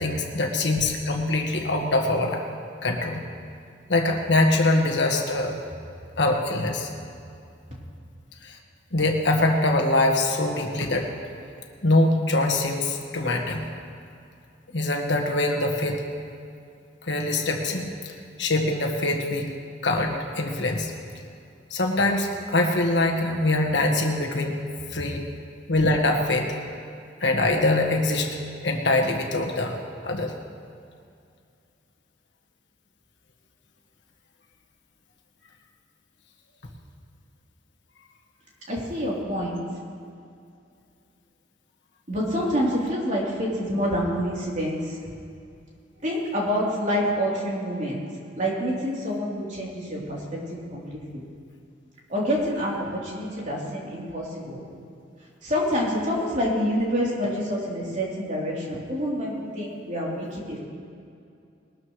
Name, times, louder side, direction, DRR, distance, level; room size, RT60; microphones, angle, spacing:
voice 1, 0.0-2.4 2.8-3.2 3.9-5.6 6.2-6.9 8.4-8.6 8.9-11.1 11.8-13.7 14.7-16.0 17.0-18.1 18.4-19.5 19.8-20.9 21.7-24.6 24.9-25.2 25.7-26.5 27.2-28.3 28.6-29.8 30.0-30.3, left 2 dB, 70° left, 1 dB, 1.6 m, -23 dB
voice 2, 38.7-39.6 42.1-44.8 46.0-48.0 48.4-50.4 50.7-50.8 51.1-51.2 52.1-54.6 55.4-60.6, equal, 45° right, -4 dB, 3.5 m, -27 dB
21.0 x 13.0 x 3.2 m, 2.5 s
head